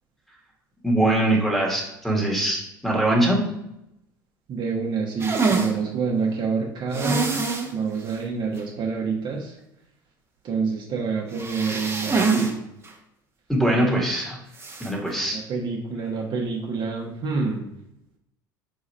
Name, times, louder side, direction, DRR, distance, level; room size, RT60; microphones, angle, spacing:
voice 1, 0.8-3.4 13.5-14.4 14.8-15.4, right 1 dB, ahead, -2 dB, 1.6 m, -22 dB
voice 2, 4.5-9.6 10.4-12.6 15.3-17.7, right 5 dB, 45° right, -1 dB, 1.0 m, -27 dB
sound 1, 5.2-5.7 6.9-7.7 8.1-8.2 8.6-8.7 11.3-12.5 12.8-12.9 14.6-14.9, right 4 dB, 20° right, 1.0 m, -24 dB
3.6 x 3.1 x 4.2 m, 0.84 s
hypercardioid pair, 75°, 11 cm